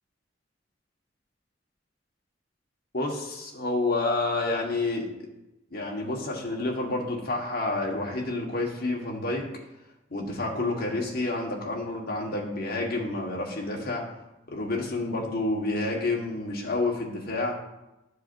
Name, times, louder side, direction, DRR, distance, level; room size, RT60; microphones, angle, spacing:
voice 1, 2.9-5.1 5.7-9.4 10.1-14.0 14.5-17.5, left 2 dB, 55° left, -1 dB, 1.4 m, -29 dB
11.5 x 4.7 x 2.6 m, 0.94 s
head